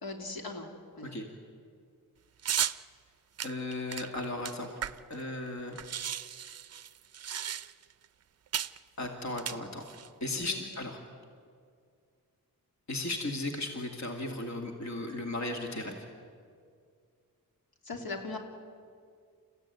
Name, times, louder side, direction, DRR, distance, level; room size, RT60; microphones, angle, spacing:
voice 1, 0.0-0.7 0.9-1.2 10.3-10.6 17.8-18.4, left 3 dB, 75° left, 3 dB, 2.8 m, -39 dB
sound 1, 2.4-2.8 3.4-5.2 5.5-5.6 5.7-7.9 8.5-8.8 9.3-10.1, right 9 dB, 45° right, 0.5 m, -35 dB
voice 2, 3.4-4.8 5.1-5.8 9.0-9.8 10.2-11.0 12.9-16.0, left 2 dB, 50° left, 3 dB, 2.3 m, -36 dB
29.5 x 15.0 x 9.3 m, 2.2 s
wide cardioid pair, 175°, 36 cm